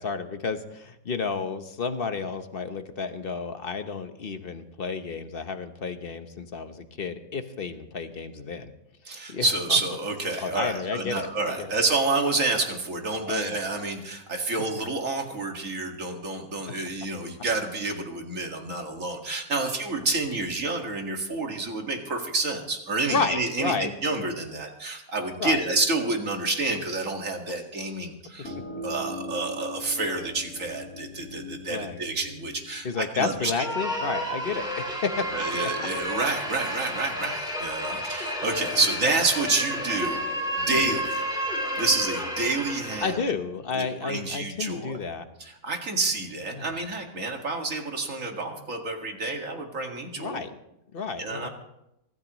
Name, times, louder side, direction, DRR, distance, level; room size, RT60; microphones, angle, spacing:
voice 1, 0.0-8.7 9.1-9.8 10.4-11.8 13.3-13.6 23.1-23.9 25.4-25.6 27.5-27.6 31.7-32.0 32.8-35.3 35.6-35.7 38.5-38.7 40.7-41.0 43.0-45.2 46.5-46.7 50.2-50.5 50.9-51.5, left 5 dB, 45° left, 8 dB, 1.1 m, -31 dB
voice 2, 9.1-28.5 28.8-33.5 35.3-40.2 40.6-41.2 41.8-43.2 43.7-45.0 45.4-50.4 51.2-51.5, right 3 dB, 60° right, 2 dB, 2.4 m, -29 dB
sound 1, 28.4-33.8, left 2 dB, 80° left, 2.3 m, -41 dB
sound 2, 33.4-43.3, equal, 5° right, 3.2 m, -31 dB
24.5 x 13.5 x 3.1 m, 0.83 s
omnidirectional pair, 1.6 m